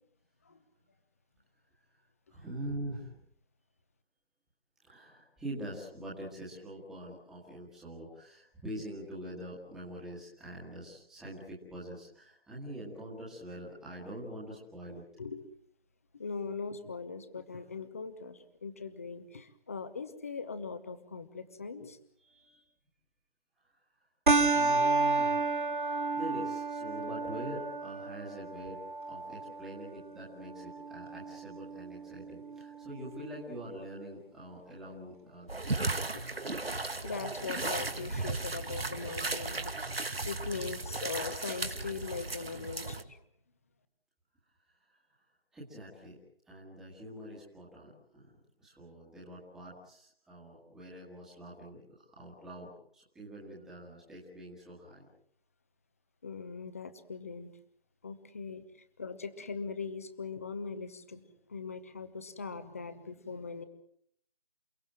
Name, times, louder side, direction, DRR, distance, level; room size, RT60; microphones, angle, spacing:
voice 1, 2.3-3.1 4.8-15.0 22.2-22.7 24.5-25.5 25.7-28.8 29.0-36.1 44.9-45.0 45.5-46.2 46.5-48.3 48.6-55.1, right 1 dB, ahead, -6 dB, 1.7 m, -44 dB
voice 2, 16.1-22.0 36.1-36.3 37.0-39.6 40.2-43.2 56.2-57.5 58.0-58.6 59.0-63.7, left 5 dB, 15° left, 12 dB, 1.0 m, -40 dB
sound 1, 24.3-33.2, right 3 dB, 55° right, 1.9 m, -32 dB
sound 2, 35.5-43.0, right 2 dB, 80° right, 2.4 m, -35 dB
29.0 x 17.5 x 7.6 m, 0.66 s
figure-of-eight pair, 165°, 29 cm